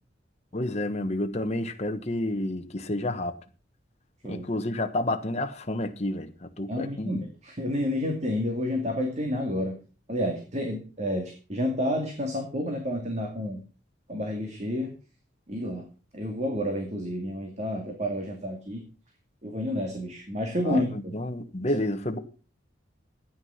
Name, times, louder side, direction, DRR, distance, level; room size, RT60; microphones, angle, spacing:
voice 1, 0.5-3.4 4.2-7.3 20.6-22.2, left 1 dB, 35° left, 1.4 m, -30 dB
voice 2, 6.7-9.8 10.1-13.6 14.1-14.9 15.5-15.9 16.1-18.8 19.4-21.1, left 1 dB, 35° right, 2.3 m, -30 dB
13.5 x 9.6 x 5.8 m
head